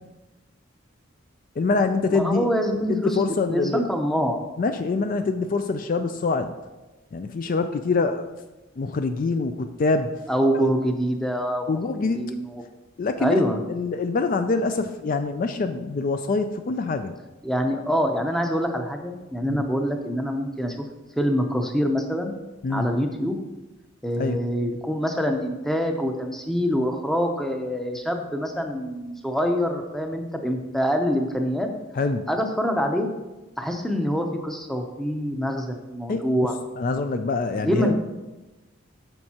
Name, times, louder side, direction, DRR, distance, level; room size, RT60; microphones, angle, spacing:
voice 1, 1.6-2.5 2.9-3.9 4.6-6.5 7.1-8.3 8.8-10.1 10.5-10.7 11.7-12.3 13.0-13.4 13.7-17.1 19.5-19.6 22.6-22.9 24.2-24.4 32.0-32.3 36.1-36.2 36.8-37.9, left 3 dB, 45° left, 8 dB, 0.3 m, -25 dB
voice 2, 2.1-3.2 3.5-4.4 10.3-11.7 12.1-12.6 13.2-13.6 17.4-20.9 21.2-22.4 22.7-23.4 24.0-31.7 32.3-33.1 33.6-36.5 37.6-38.0, equal, ahead, 4 dB, 0.6 m, -25 dB
9.0 x 6.4 x 2.9 m, 1.1 s
head